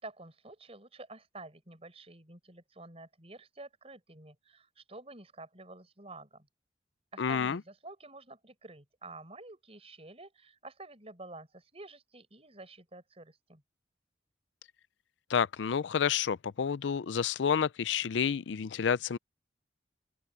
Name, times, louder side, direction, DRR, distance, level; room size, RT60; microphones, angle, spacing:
voice 1, 0.0-6.5 7.1-13.6, right 2 dB, 35° right, 5.6 m, -49 dB
voice 2, 7.2-7.6 15.3-19.2, left 7 dB, 85° left, 0.5 m, -29 dB
open air
head